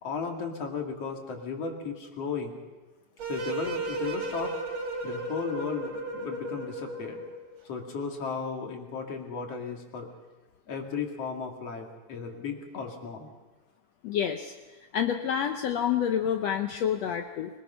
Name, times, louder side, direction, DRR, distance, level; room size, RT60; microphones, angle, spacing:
voice 1, 0.0-2.6 3.3-4.6 5.0-7.2 7.6-10.1 10.7-13.3, left 5 dB, 50° left, 2 dB, 3.0 m, -35 dB
sound 1, 3.2-7.5, right 2 dB, 50° right, 3.6 m, -34 dB
voice 2, 14.0-14.5 14.9-17.5, left 9 dB, 75° left, 6 dB, 1.6 m, -28 dB
24.5 x 19.5 x 5.6 m, 1.2 s
omnidirectional pair, 3.8 m